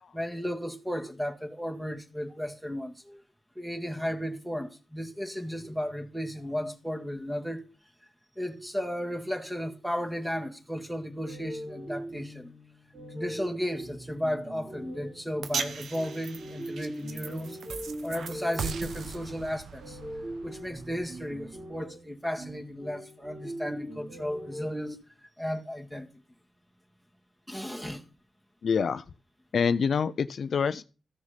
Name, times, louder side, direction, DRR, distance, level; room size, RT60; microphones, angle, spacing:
voice 1, 0.1-3.2 3.6-7.7 8.4-12.5 13.1-17.6 18.0-20.0 20.4-26.1 27.5-28.1, equal, 5° right, 1.8 m, -34 dB
sound 1, 11.2-24.9, right 1 dB, 40° right, 3.1 m, -41 dB
sound 2, 15.4-21.8, right 6 dB, 80° right, 1.0 m, -39 dB
voice 2, 28.6-29.0 29.5-30.8, left 6 dB, 65° left, 0.5 m, -26 dB
14.0 x 6.2 x 5.8 m
wide cardioid pair, 105°, 0 cm